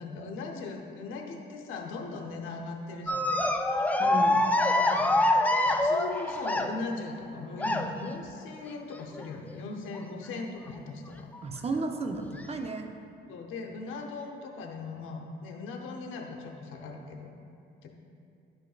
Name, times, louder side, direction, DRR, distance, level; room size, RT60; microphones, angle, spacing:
voice 1, 0.0-3.3 4.7-5.2 5.4-11.3 13.3-17.4 17.8-17.9, left 3 dB, 85° left, 2 dB, 0.8 m, -39 dB
sound 1, 3.1-7.0 7.6-8.1 9.2-9.5 9.9-10.0 11.3-11.4 12.3-12.4, left 1 dB, 10° left, 0.4 m, -25 dB
voice 2, 4.0-4.5 11.4-12.9, right 3 dB, 30° right, 4 dB, 0.6 m, -33 dB
11.0 x 5.2 x 2.4 m, 2.5 s
cardioid pair, 90°, 20 cm